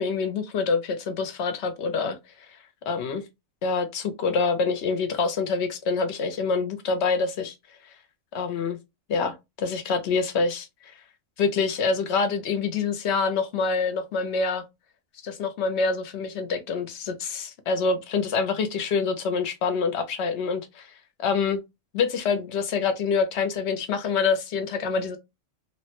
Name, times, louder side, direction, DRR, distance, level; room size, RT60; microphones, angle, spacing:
voice 1, 0.0-2.2 2.9-3.2 3.6-7.5 8.3-8.8 9.1-10.9 11.4-14.6 15.2-20.9 21.2-21.6 21.9-25.2, left 5 dB, 65° left, 0.8 m, -26 dB
3.1 x 2.1 x 2.8 m
omnidirectional pair, 1.4 m